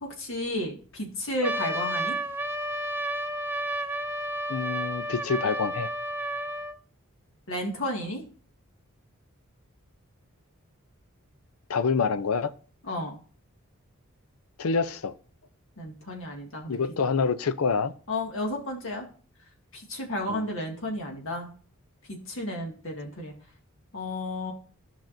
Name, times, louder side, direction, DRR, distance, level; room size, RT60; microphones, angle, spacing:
voice 1, 0.0-2.2 7.5-8.2 12.9-13.1 15.8-16.8 18.1-19.1 19.7-21.5 22.1-23.3 23.9-24.5, left 1 dB, 60° left, 1.9 m, -32 dB
Trumpet, 1.4-6.8, right 1 dB, 10° right, 0.5 m, -31 dB
voice 2, 4.5-5.9 11.7-12.5 14.6-15.1 16.7-17.9 20.3-20.5, left 5 dB, 80° left, 0.5 m, -26 dB
13.0 x 5.8 x 2.6 m
head